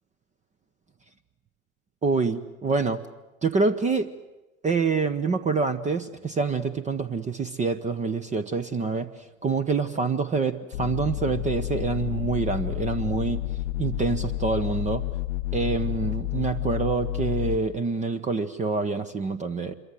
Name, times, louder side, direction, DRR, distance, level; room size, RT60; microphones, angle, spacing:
voice 1, 2.0-3.0 3.4-4.1 4.6-9.1 9.4-13.4 13.8-15.0 15.5-19.7, right 4 dB, 15° right, 13 dB, 0.9 m, -26 dB
sound 1, 10.7-17.6, left 18 dB, 50° left, 0.8 m, -30 dB
26.5 x 23.0 x 7.7 m, 1.0 s
figure-of-eight pair, 85°, 41 cm